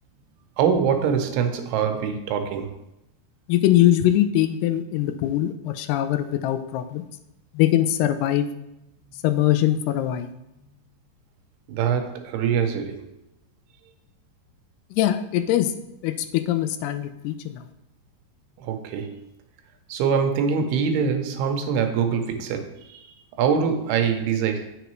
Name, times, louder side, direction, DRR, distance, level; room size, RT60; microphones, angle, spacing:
voice 1, 0.6-2.8 11.7-13.0 18.6-19.2 19.9-23.0 23.4-24.7, right 7 dB, 80° right, 6 dB, 2.7 m, -24 dB
voice 2, 3.5-7.0 7.5-8.5 9.2-10.3 14.9-15.7 16.0-17.6, left 13 dB, 85° left, 10 dB, 2.5 m, -22 dB
8.1 x 6.2 x 3.0 m, 0.90 s
omnidirectional pair, 4.6 m